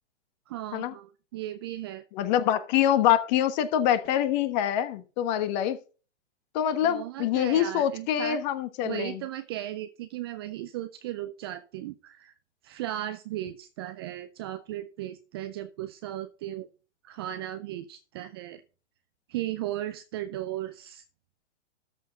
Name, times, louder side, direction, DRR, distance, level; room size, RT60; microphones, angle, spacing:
voice 1, 0.5-2.0 6.8-8.4 8.8-12.4 12.6-16.7 17.0-18.6 19.3-21.0, right 13 dB, 25° right, 10 dB, 0.4 m, -36 dB
voice 2, 2.1-5.8 6.5-9.2, left 10 dB, 40° left, 11 dB, 1.3 m, -25 dB
13.5 x 4.5 x 5.7 m, 0.36 s
hypercardioid pair, 125°, 35 cm